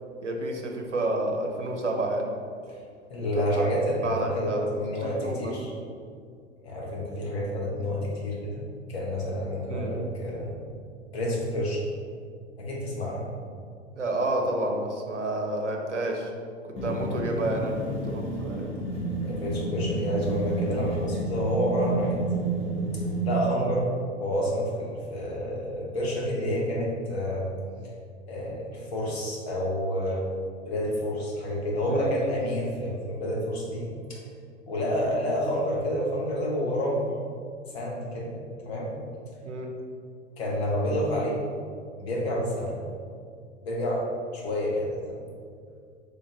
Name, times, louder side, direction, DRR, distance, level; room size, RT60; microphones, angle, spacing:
voice 1, 0.2-2.3 3.2-3.7 4.0-4.7 5.0-5.6 9.7-10.0 14.0-16.3 16.8-18.7 31.9-32.3 39.4-39.7, right 2 dB, 85° right, 1 dB, 0.6 m, -30 dB
voice 2, 3.1-5.7 6.6-8.6 8.9-10.6 11.1-11.9 12.6-13.3 19.2-22.2 22.9-23.8 24.2-27.4 28.3-30.2 30.7-34.2 34.7-37.1 37.7-38.3 38.6-38.9 40.4-41.4 42.0-42.8 43.6-44.0 44.3-45.2, equal, 60° left, -3 dB, 1.1 m, -29 dB
sound 1, 16.8-23.5, right 2 dB, 30° left, 0.9 m, -30 dB
3.7 x 2.5 x 3.8 m, 2.2 s
figure-of-eight pair, 90°, 35 cm